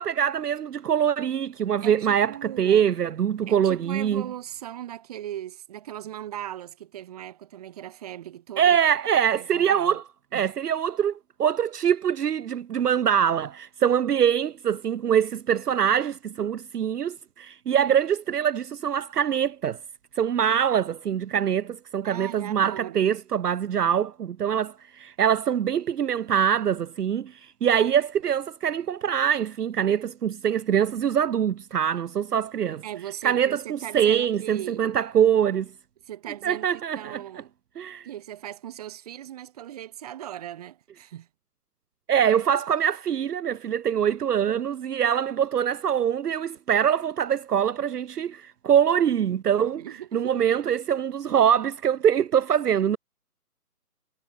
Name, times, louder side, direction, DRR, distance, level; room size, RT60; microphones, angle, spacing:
voice 1, 0.0-4.2 8.6-10.0 10.3-19.8 20.2-27.3 27.6-32.8 33.2-35.7 36.4-37.2 37.8-38.1 42.1-49.8 50.1-53.0, right 8 dB, 75° right, 0.6 m, -24 dB
voice 2, 1.8-2.9 3.5-8.8 9.3-10.0 10.3-10.5 20.5-20.6 21.1-21.5 22.0-23.0 32.8-34.9 36.0-37.5 38.1-41.3 49.6-50.5, right 12 dB, 25° right, 1.9 m, -38 dB
figure-of-eight pair, 150°, 47 cm